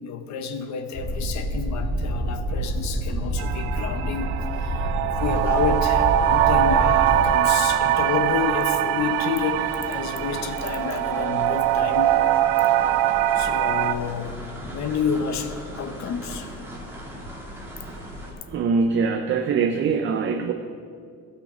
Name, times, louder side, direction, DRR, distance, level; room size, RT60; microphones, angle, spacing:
voice 1, 0.0-12.2 13.3-16.5 17.2-17.6 18.4-18.5, left 6 dB, 50° left, 8 dB, 0.9 m, -30 dB
sound 1, 0.9-7.2, right 1 dB, 30° left, 1.9 m, -27 dB
sound 2, 3.4-14.0, right 12 dB, 90° right, 0.5 m, -22 dB
sound 3, 5.2-18.3, equal, 5° right, 1.7 m, -38 dB
voice 2, 18.5-20.5, right 5 dB, 35° right, 6 dB, 0.5 m, -23 dB
15.0 x 6.3 x 4.9 m, 2.2 s
cardioid pair, 155°, 34 cm